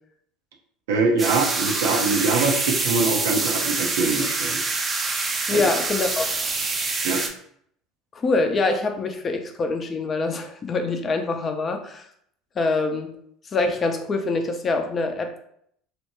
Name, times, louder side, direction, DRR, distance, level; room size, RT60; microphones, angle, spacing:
voice 1, 0.9-4.6 5.5-5.7 7.0-7.2, right 3 dB, 80° right, 2 dB, 0.6 m, -23 dB
sound 1, 1.2-7.3, right 3 dB, 30° right, 0.5 m, -26 dB
voice 2, 5.5-6.3 8.1-12.0 12.6-13.1 13.5-15.4, left 3 dB, 35° left, 5 dB, 0.5 m, -24 dB
2.8 x 2.1 x 2.9 m, 0.68 s
hypercardioid pair, 75°, 0 cm